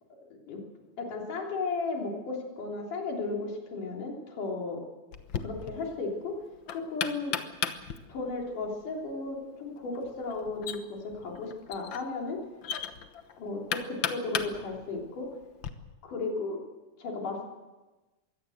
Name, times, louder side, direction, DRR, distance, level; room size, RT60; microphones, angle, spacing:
voice 1, 1.0-4.8 5.4-6.4 6.7-7.4 8.1-12.4 13.4-15.3 16.0-16.6 17.0-17.5, left 3 dB, 90° left, 0 dB, 5.1 m, -34 dB
Knock, 5.1-15.7, left 8 dB, 65° left, 1.2 m, -38 dB
22.5 x 17.0 x 7.9 m, 1.1 s
omnidirectional pair, 3.5 m